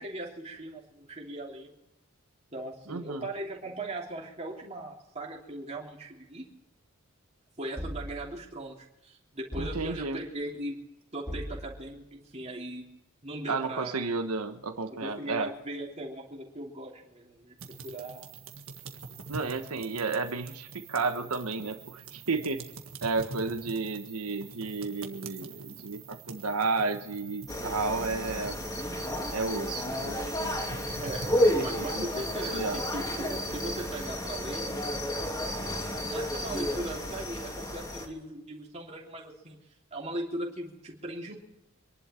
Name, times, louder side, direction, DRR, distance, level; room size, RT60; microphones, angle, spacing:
voice 1, 0.0-1.7 2.5-6.5 7.6-8.8 9.0-10.8 11.1-12.8 13.2-14.0 15.0-18.3 31.0-34.7 36.0-39.6 39.9-41.4, right 1 dB, 30° right, -2 dB, 3.2 m, -39 dB
voice 2, 2.9-3.3 9.6-10.2 13.5-15.5 19.3-22.7 23.0-28.6 29.3-30.7 31.6-32.1 32.5-32.8, right 3 dB, 85° right, 8 dB, 1.3 m, -32 dB
sound 1, 7.8-8.5 9.5-10.3 11.3-12.0, equal, 5° right, 3.2 m, -39 dB
sound 2, 17.6-34.1, right 4 dB, 65° right, 1.8 m, -46 dB
sound 3, 27.5-38.1, left 1 dB, 15° left, 2.6 m, -31 dB
26.0 x 11.5 x 4.5 m, 0.97 s
head